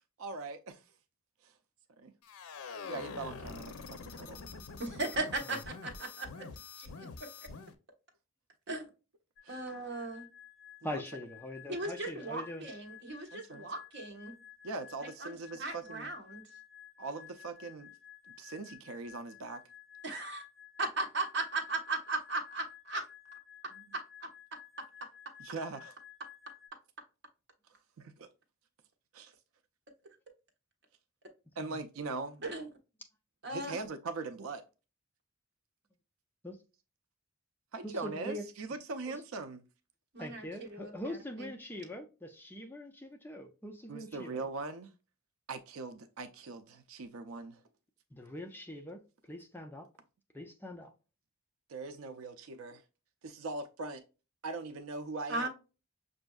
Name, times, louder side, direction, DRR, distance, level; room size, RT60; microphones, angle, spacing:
voice 1, 0.2-0.8 2.0-2.1 2.9-4.4 9.4-9.6 10.9-11.0 13.3-13.7 14.6-16.1 17.0-17.9 18.4-19.6 25.4-25.9 28.0-28.3 29.1-29.3 31.6-32.4 33.5-34.6 37.7-39.6 43.9-44.9 45.5-47.6 51.7-52.8 53.2-54.0 54.4-55.5, right 3 dB, 75° right, 0.5 m, -41 dB
sound 1, 2.2-7.7, left 4 dB, 90° left, 0.5 m, -45 dB
voice 2, 4.8-6.3 6.8-6.9 8.7-8.9 9.5-10.3 11.7-14.3 15.2-16.5 20.0-20.4 20.8-23.0 32.4-32.7 33.4-33.8 40.1-41.5 55.3-55.5, right 2 dB, 55° right, 1.0 m, -37 dB
sound 2, 9.4-26.7, left 10 dB, 45° left, 1.5 m, -54 dB
voice 3, 10.8-12.7 31.6-31.8 36.4-36.6 37.8-38.5 39.1-39.2 40.2-44.5 48.1-49.0 49.3-49.9 50.3-50.9, left 1 dB, 10° left, 0.4 m, -42 dB
6.1 x 2.6 x 2.3 m
head